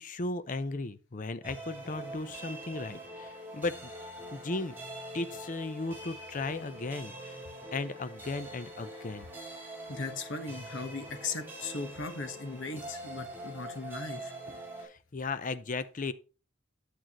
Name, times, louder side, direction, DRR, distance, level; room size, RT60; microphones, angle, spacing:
voice 1, 0.0-3.9 4.3-4.8 5.1-7.4 7.7-9.3 14.8-16.1, left 3 dB, 40° left, 0.6 m, -36 dB
sound 1, 1.4-14.9, right 1 dB, 10° right, 3.4 m, -44 dB
voice 2, 9.9-14.3, left 3 dB, 65° left, 1.2 m, -38 dB
8.8 x 7.8 x 3.0 m
head